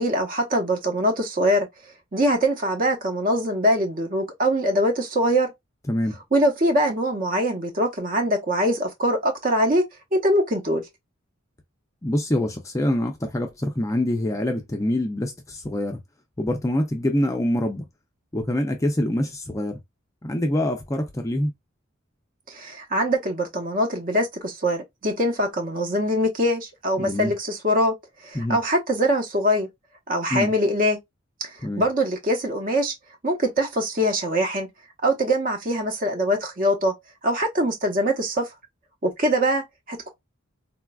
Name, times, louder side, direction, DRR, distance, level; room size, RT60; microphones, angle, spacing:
voice 1, 0.0-1.7 2.1-5.5 6.3-9.8 10.1-10.8 22.5-28.0 28.2-29.7 30.1-31.0 31.4-31.5 31.8-32.9 33.2-34.7 35.0-36.9 37.2-38.5 39.0-40.1, equal, 40° right, 0.8 m, -23 dB
voice 2, 12.0-16.0 16.4-17.8 18.3-19.8 20.2-21.5 27.0-27.3 28.3-28.6 30.3-30.5 31.6-31.8, left 1 dB, 15° left, 0.4 m, -25 dB
4.0 x 2.3 x 2.3 m
head